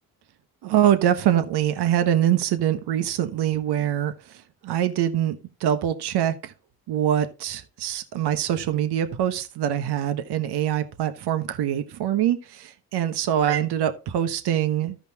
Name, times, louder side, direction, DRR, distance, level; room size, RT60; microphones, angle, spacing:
voice 1, 0.6-6.5 6.9-15.0, right 10 dB, 65° right, 1.4 m, -24 dB
14.5 x 5.1 x 2.9 m
hypercardioid pair, 50°, 42 cm